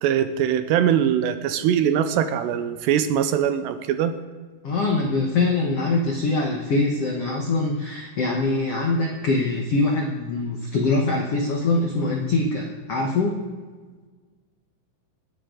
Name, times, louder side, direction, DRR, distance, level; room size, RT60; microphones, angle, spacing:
voice 1, 0.0-4.1, right 9 dB, 85° right, 10 dB, 2.9 m, -22 dB
voice 2, 4.6-13.4, left 3 dB, 75° left, 0 dB, 1.4 m, -23 dB
27.5 x 10.0 x 3.9 m, 1.5 s
omnidirectional pair, 4.9 m